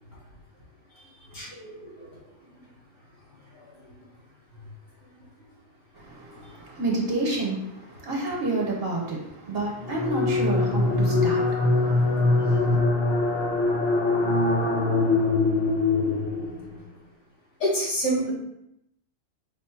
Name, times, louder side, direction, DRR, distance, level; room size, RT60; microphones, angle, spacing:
voice 1, 1.3-2.2 3.6-3.7 17.6-18.3, right 1 dB, 75° left, -5 dB, 1.9 m, -28 dB
voice 2, 5.9-12.8, right 2 dB, 50° right, -2 dB, 1.0 m, -30 dB
sound 1, 9.8-16.7, left 2 dB, 50° left, 0.9 m, -23 dB
4.9 x 2.1 x 4.4 m, 0.82 s
omnidirectional pair, 1.4 m